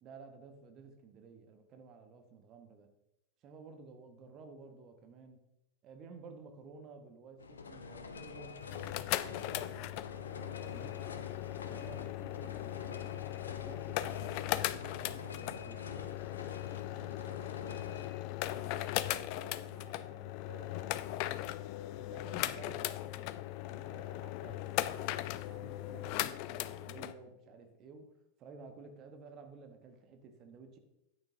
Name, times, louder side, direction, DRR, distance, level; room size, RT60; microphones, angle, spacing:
voice 1, 0.0-2.9 3.4-5.4 5.8-10.0 10.4-11.1 11.4-13.1 13.6-15.9 18.5-18.9 22.0-25.2 25.5-28.1 28.4-30.8, right 4 dB, 35° right, 5 dB, 1.2 m, -53 dB
sound 1, 7.4-18.1, left 4 dB, 70° left, 0.8 m, -47 dB
sound 2, 8.6-27.1, left 15 dB, 45° left, 0.4 m, -38 dB
voice 2, 16.8-17.9 18.4-21.6, right 4 dB, 65° right, 5 dB, 1.2 m, -56 dB
13.0 x 8.6 x 2.8 m, 0.86 s
figure-of-eight pair, 90°, 0 cm